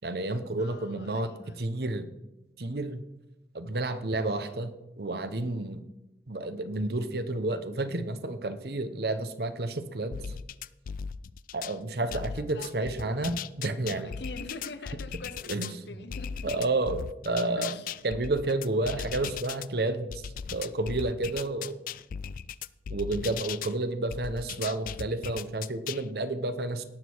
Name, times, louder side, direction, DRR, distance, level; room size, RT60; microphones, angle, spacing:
voice 1, 0.0-1.3 1.6-2.1 2.6-3.0 3.5-5.8 6.3-10.2 11.5-14.1 15.5-15.7 16.4-17.8 18.0-21.8 22.9-26.8, right 2 dB, 60° right, 11 dB, 0.9 m, -30 dB
voice 2, 0.6-1.6 12.1-13.2 14.0-16.6 17.6-17.9, left 3 dB, 75° left, 10 dB, 1.0 m, -45 dB
sound 1, 10.1-11.8 12.1-15.7 16.1-19.7 20.1-23.7 24.1-26.0, left 7 dB, 50° left, 0.3 m, -38 dB
18.0 x 6.5 x 4.6 m, 0.98 s
head